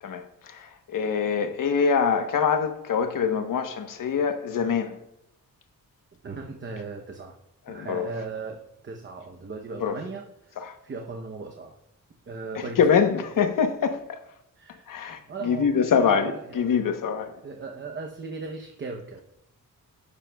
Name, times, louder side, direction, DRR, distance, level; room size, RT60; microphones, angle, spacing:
voice 1, 0.0-5.0 7.7-8.1 9.8-10.0 10.6-10.8 12.5-14.2 14.9-17.3, left 6 dB, 75° left, 1.0 m, -24 dB
voice 2, 6.2-7.4 7.7-11.7 12.3-12.8 14.6-14.9 15.3-16.7 17.4-19.2, right 4 dB, 35° right, 0.8 m, -37 dB
12.0 x 11.5 x 2.3 m
wide cardioid pair, 175°, 32 cm